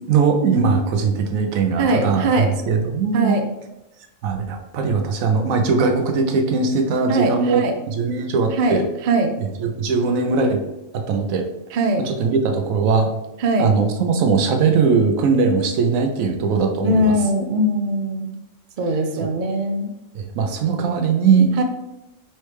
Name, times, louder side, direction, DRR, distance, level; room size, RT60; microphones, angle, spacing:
voice 1, 0.1-3.4 4.2-7.6 7.9-8.8 9.4-10.6 10.9-11.5 12.0-13.2 13.6-17.1 20.1-21.5, right 5 dB, 90° right, 5 dB, 1.1 m, -20 dB
voice 2, 1.8-2.5 3.1-3.4 7.1-7.7 8.5-9.3 11.7-12.0 13.4-13.7 16.8-18.3 18.8-19.9 21.6-21.7, right 1 dB, 55° right, 5 dB, 0.5 m, -21 dB
4.4 x 3.1 x 3.2 m, 0.93 s
omnidirectional pair, 1.4 m